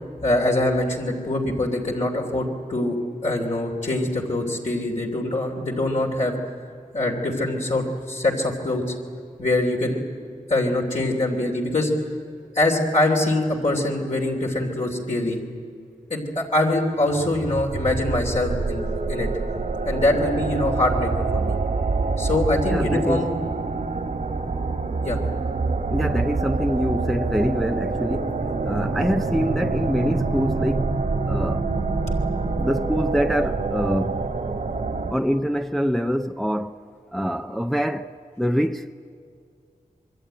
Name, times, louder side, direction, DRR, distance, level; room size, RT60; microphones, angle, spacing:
voice 1, 0.2-3.0 3.2-6.3 6.9-8.9 9.4-10.0 10.5-11.9 12.5-15.4 16.1-19.3 19.8-21.6 22.2-23.3 25.0-25.2 32.1-32.2 32.6-32.7, left 1 dB, 55° left, 3.1 m, -23 dB
sound 1, 17.1-35.1, right 3 dB, 70° right, 2.0 m, -26 dB
voice 2, 22.6-23.3 25.9-28.4 28.7-30.9 31.3-31.7 32.6-34.3 35.1-36.8 37.1-38.9, equal, ahead, 0.6 m, -25 dB
25.5 x 23.0 x 9.1 m
wide cardioid pair, 95°, 15 cm